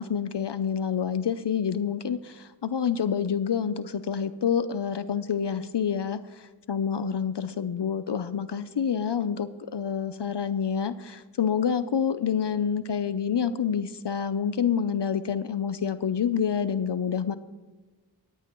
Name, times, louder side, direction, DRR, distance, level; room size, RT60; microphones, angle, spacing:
voice 1, 0.0-17.4, left 7 dB, 65° left, 13 dB, 0.6 m, -28 dB
18.5 x 14.5 x 3.0 m, 1.3 s
wide cardioid pair, 70°, 45 cm